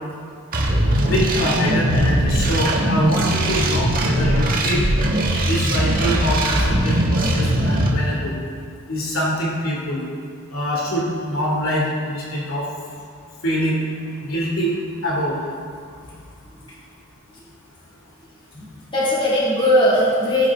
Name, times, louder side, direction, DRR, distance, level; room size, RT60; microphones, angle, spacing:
sound 1, 0.5-7.9, right 1 dB, 40° right, 1.7 m, -20 dB
voice 1, 1.0-4.9 5.4-8.3 8.9-10.0 10.5-12.7 13.4-13.8 14.2-14.8 15.0-15.4, equal, 65° left, -4 dB, 2.6 m, -24 dB
voice 2, 18.5-20.5, equal, 25° left, -7 dB, 3.4 m, -19 dB
19.5 x 11.0 x 3.7 m, 2.3 s
head